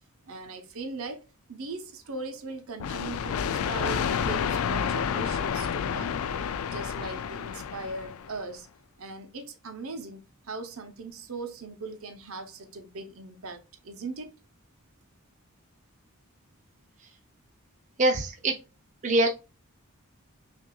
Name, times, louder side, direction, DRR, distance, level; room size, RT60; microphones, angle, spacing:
voice 1, 0.3-6.2 6.7-8.7 9.0-14.3, right 3 dB, 70° right, 0.7 m, -39 dB
sound 1, 2.8-8.4, left 7 dB, 80° left, 0.4 m, -30 dB
voice 2, 18.0-18.5 19.0-19.3, right 2 dB, 35° right, 0.5 m, -23 dB
5.7 x 2.6 x 2.3 m
head